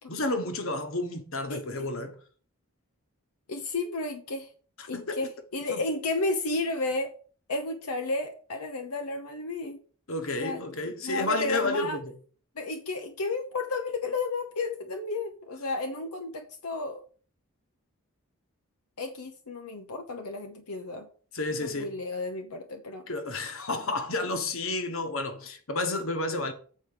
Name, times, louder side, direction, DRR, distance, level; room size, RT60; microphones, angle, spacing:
voice 1, 0.1-2.2 4.8-5.2 5.7-5.8 10.1-12.1 21.3-22.0 23.1-26.5, left 2 dB, 65° left, 1.4 m, -31 dB
voice 2, 3.5-4.5 4.9-7.1 7.5-9.8 10.3-10.6 11.0-12.0 12.6-17.0 19.0-21.1 21.7-23.0, left 3 dB, 90° left, 1.0 m, -32 dB
7.8 x 4.7 x 6.7 m
head